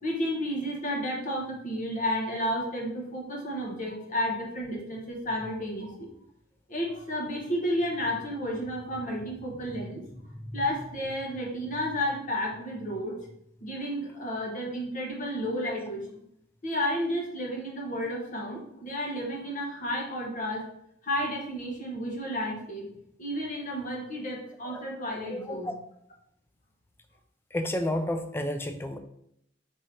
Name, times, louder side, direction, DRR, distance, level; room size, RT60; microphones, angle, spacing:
voice 1, 0.0-6.1 6.7-13.2 13.6-16.0 16.6-20.6 21.0-22.9 23.2-25.7, equal, 45° left, -1 dB, 1.1 m, -32 dB
voice 2, 25.3-25.7 27.5-29.0, left 1 dB, 10° left, 6 dB, 0.4 m, -31 dB
3.7 x 3.3 x 4.0 m, 0.71 s
head